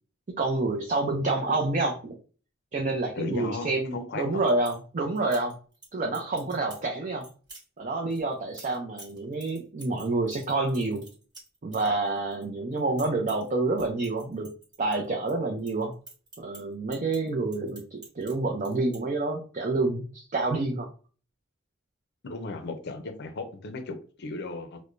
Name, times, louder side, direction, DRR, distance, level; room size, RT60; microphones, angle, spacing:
voice 1, 0.3-2.1 2.7-5.5 5.9-7.3 7.8-11.1 11.6-14.5 14.8-15.9 16.4-20.9, right 2 dB, 40° right, 0 dB, 0.5 m, -28 dB
voice 2, 3.2-4.4 22.2-24.8, left 3 dB, 60° left, 7 dB, 0.5 m, -36 dB
sound 1, 4.2-4.8 5.2-5.9 6.1-6.9 7.2-7.6 8.1-12.4 12.7-13.5 13.8-15.3 15.6-18.3 18.6-19.0, right 2 dB, 20° right, 1.4 m, -48 dB
4.7 x 2.1 x 2.5 m, 0.38 s
head